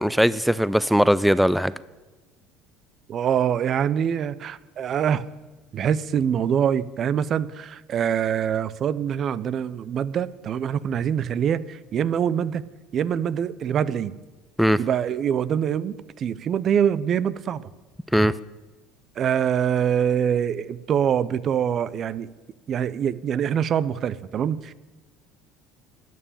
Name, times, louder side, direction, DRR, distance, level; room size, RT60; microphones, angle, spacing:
voice 1, 0.0-1.7 14.6-14.8 18.1-18.3, equal, ahead, 17 dB, 0.5 m, -19 dB
voice 2, 3.1-5.2 5.7-12.6 12.9-14.2 14.8-17.6 19.2-22.3 22.7-24.7, right 8 dB, 45° right, 17 dB, 0.6 m, -24 dB
12.5 x 9.0 x 8.8 m, 1.2 s
hypercardioid pair, 70°, 0 cm